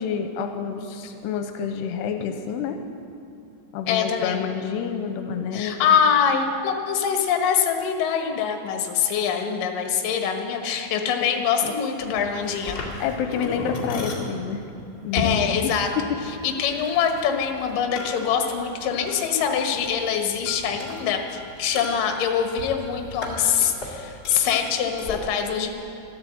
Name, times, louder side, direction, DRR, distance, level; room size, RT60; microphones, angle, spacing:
voice 1, 0.0-2.8 3.7-5.9 11.2-11.7 13.0-14.6 15.0-16.2, left 7 dB, 85° left, 6 dB, 2.8 m, -29 dB
voice 2, 3.9-4.4 5.5-12.8 15.1-15.9 16.4-25.7, left 7 dB, 65° left, 4 dB, 2.6 m, -24 dB
sound 1, 12.0-25.2, left 2 dB, 35° left, 1.8 m, -36 dB
13.5 x 12.5 x 7.8 m, 2.6 s
omnidirectional pair, 4.9 m